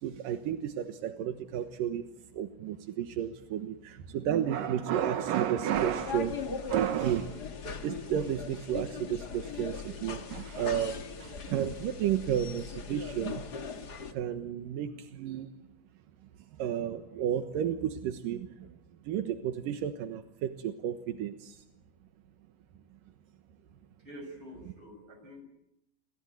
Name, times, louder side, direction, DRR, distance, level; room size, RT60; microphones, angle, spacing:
voice 1, 0.0-7.4 7.8-13.5 14.1-15.5 16.6-18.8 19.0-21.6, right 10 dB, 80° right, 8 dB, 3.0 m, -32 dB
sound 1, 5.7-14.1, left 5 dB, 35° left, 1.9 m, -40 dB
voice 2, 24.0-25.4, equal, 35° right, 6 dB, 7.6 m, -47 dB
28.5 x 23.0 x 9.1 m, 0.82 s
omnidirectional pair, 3.8 m